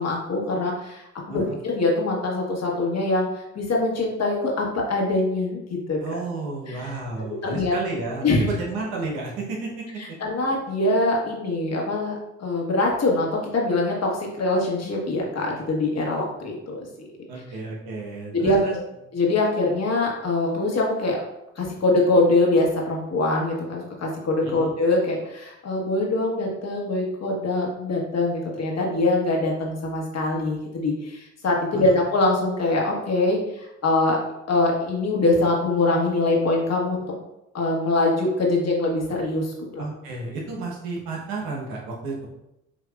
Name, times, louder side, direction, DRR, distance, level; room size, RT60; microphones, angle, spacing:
voice 1, 0.0-3.3 3.5-6.2 6.7-6.8 7.4-7.7 8.2-8.5 10.2-16.5 18.3-18.6 19.1-21.2 21.6-34.2 34.5-37.0 37.5-39.9, left 2 dB, 45° left, -1 dB, 1.3 m, -23 dB
voice 2, 6.0-10.0 17.3-18.8 24.4-24.7 31.7-31.9 39.8-42.3, right 3 dB, 80° right, -2 dB, 1.1 m, -32 dB
5.9 x 2.8 x 2.4 m, 0.87 s
hypercardioid pair, 55°, 36 cm